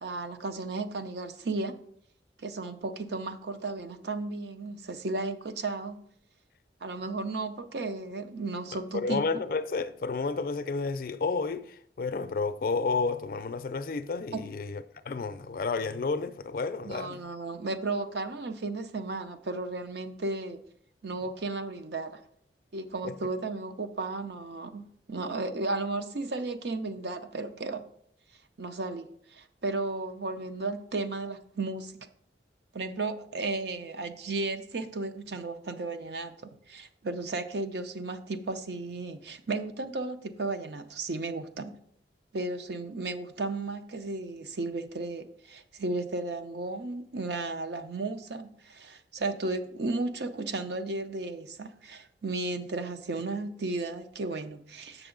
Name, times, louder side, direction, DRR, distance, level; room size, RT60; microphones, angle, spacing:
voice 1, 0.0-1.7 2.4-6.0 6.8-9.3 14.3-14.4 16.8-20.6 21.0-22.2 22.7-27.8 28.6-32.0 32.7-41.7 42.3-55.1, right 3 dB, 70° right, 0.6 m, -34 dB
voice 2, 8.9-17.2 23.0-23.1, left 4 dB, 50° left, 0.4 m, -31 dB
7.8 x 6.1 x 3.8 m
head